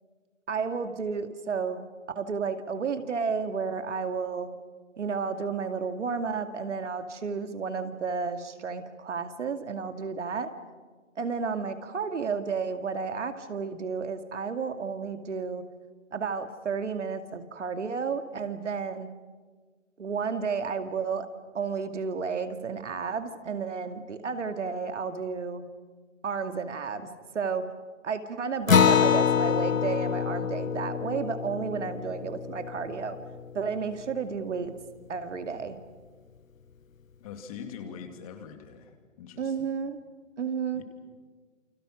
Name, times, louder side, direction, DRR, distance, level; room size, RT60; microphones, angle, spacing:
voice 1, 0.5-1.9 2.1-4.5 5.0-10.5 11.2-15.6 16.1-19.1 20.0-21.3 21.5-25.6 26.2-27.1 27.3-27.7 28.0-33.2 33.5-34.7 35.1-35.8 39.4-40.0 40.4-40.8, right 5 dB, 65° right, 8 dB, 2.3 m, -32 dB
Acoustic guitar, 28.7-33.6, left 7 dB, 85° left, 1.0 m, -26 dB
voice 2, 37.2-39.7 40.7-40.8, left 7 dB, 25° left, 6 dB, 2.6 m, -43 dB
29.0 x 25.5 x 6.4 m, 1.5 s
hypercardioid pair, 155°, 39 cm